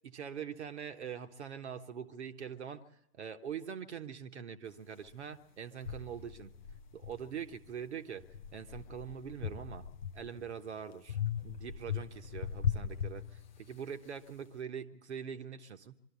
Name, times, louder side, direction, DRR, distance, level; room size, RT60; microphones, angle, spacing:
voice 1, 0.0-2.8 3.1-6.5 6.9-9.9 10.1-11.2 11.4-16.0, right 7 dB, 45° right, 7 dB, 1.3 m, -43 dB
sound 1, 5.0-5.1 5.8-7.7 8.2-10.5 11.1-13.9, left 7 dB, 30° left, 0.6 m, -39 dB
24.0 x 13.0 x 8.2 m, 0.80 s
figure-of-eight pair, 130°, 48 cm